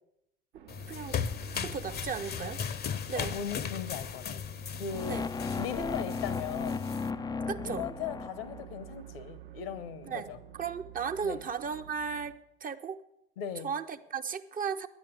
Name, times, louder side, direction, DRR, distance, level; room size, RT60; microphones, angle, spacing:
sound 1, 0.5-12.3, right 10 dB, 70° right, 1.1 m, -50 dB
sound 2, 0.7-7.1, left 7 dB, 30° left, 0.8 m, -37 dB
voice 1, 0.9-1.2 1.5-2.6 3.1-3.4 5.1-5.2 7.5-7.9 10.1-10.3 10.6-13.0 13.6-14.9, right 6 dB, 30° right, 9 dB, 0.7 m, -35 dB
voice 2, 3.1-4.4 4.8-5.2 5.6-6.9 7.6-10.4 11.2-11.4 13.4-13.7, left 8 dB, 65° left, 14 dB, 1.2 m, -38 dB
sound 3, 4.9-9.0, left 4 dB, 15° left, 0.4 m, -36 dB
10.0 x 8.7 x 9.4 m, 0.81 s
figure-of-eight pair, 60°, 30 cm